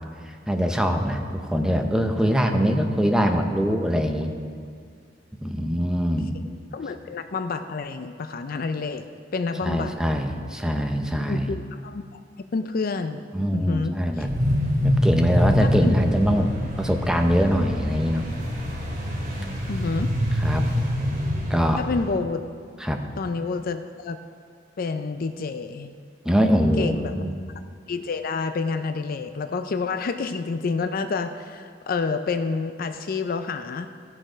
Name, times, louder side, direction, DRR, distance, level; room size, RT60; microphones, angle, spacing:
voice 1, 0.3-4.3 5.4-6.3 9.6-11.5 13.3-14.3 15.0-18.2 20.4-20.6 21.5-21.8 22.8-23.0 26.2-27.3, equal, 5° right, 4 dB, 0.7 m, -23 dB
voice 2, 6.7-9.0 9.3-10.0 11.3-12.0 12.5-13.2 13.5-14.0 15.6-15.9 19.7-20.1 21.8-22.4 23.2-24.2 24.8-25.9 26.8-27.1 27.9-33.9, left 4 dB, 50° left, 9 dB, 0.4 m, -28 dB
sound 1, 14.2-22.1, equal, 50° right, 2.4 m, -25 dB
15.5 x 6.4 x 5.0 m, 2.1 s
head